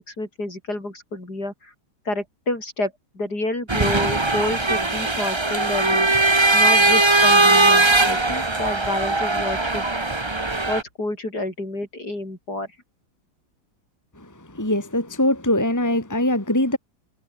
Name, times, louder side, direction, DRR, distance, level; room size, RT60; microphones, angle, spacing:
voice 1, 0.0-1.7 2.0-6.1 6.5-9.9 10.7-12.7, left 2 dB, 55° left, 8.5 m, -29 dB
sound 1, 3.7-10.8, right 2 dB, 15° right, 1.4 m, -19 dB
voice 2, 14.5-16.8, left 1 dB, 10° left, 2.6 m, -22 dB
omnidirectional pair, 2.0 m